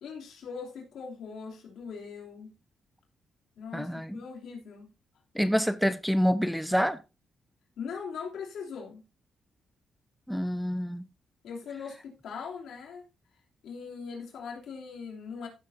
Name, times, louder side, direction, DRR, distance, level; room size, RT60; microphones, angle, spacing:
voice 1, 0.0-2.6 3.6-4.9 7.8-9.0 11.4-13.1 13.6-15.5, left 6 dB, 80° left, 2.9 m, -40 dB
voice 2, 3.7-4.2 5.3-7.0 10.3-11.1, equal, ahead, 0.7 m, -27 dB
15.0 x 7.5 x 2.7 m
cardioid pair, 85°, 0 cm